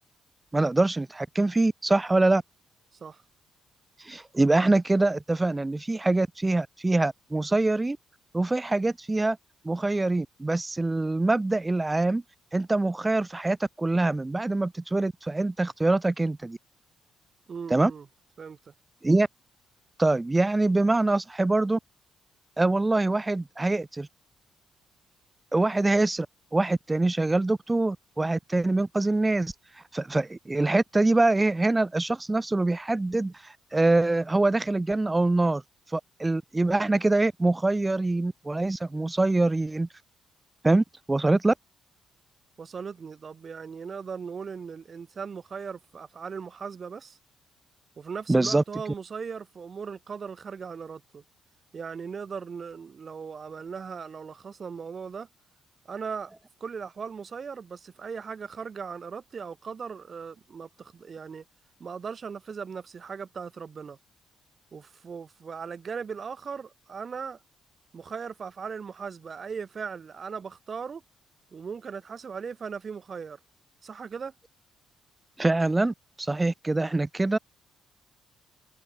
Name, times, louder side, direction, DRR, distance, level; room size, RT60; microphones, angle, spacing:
voice 1, 0.5-2.4 4.0-8.0 8.3-9.4 9.6-12.2 12.5-16.6 17.7-17.9 19.0-19.3 20.0-21.8 22.6-24.1 25.5-26.3 26.5-29.5 29.9-35.6 35.9-39.9 40.6-41.5 48.3-48.6 75.4-77.4, right 2 dB, 15° right, 1.2 m, -24 dB
voice 2, 17.5-18.1 18.4-18.7 42.6-47.2 48.0-51.2 51.7-55.3 55.9-56.3 56.6-61.4 61.8-64.0 64.7-67.4 67.9-71.0 71.5-73.4 73.8-74.3, right 6 dB, 45° right, 1.7 m, -38 dB
cardioid pair, 90°, 0 cm